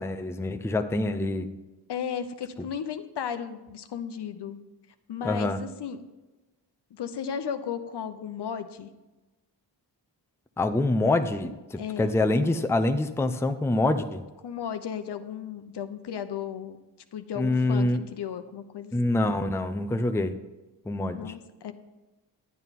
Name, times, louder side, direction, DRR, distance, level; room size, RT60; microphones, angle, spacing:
voice 1, 0.0-1.5 5.2-5.6 10.6-14.2 17.4-18.0 18.9-20.4 20.9-21.3, left 2 dB, 5° left, 7 dB, 0.5 m, -26 dB
voice 2, 1.9-4.6 5.1-6.0 6.9-8.9 11.8-12.2 14.4-16.8 17.1-19.1 21.1-21.7, left 8 dB, 65° left, 9 dB, 0.9 m, -35 dB
11.0 x 9.0 x 4.2 m, 1.1 s
cardioid pair, 90°, 43 cm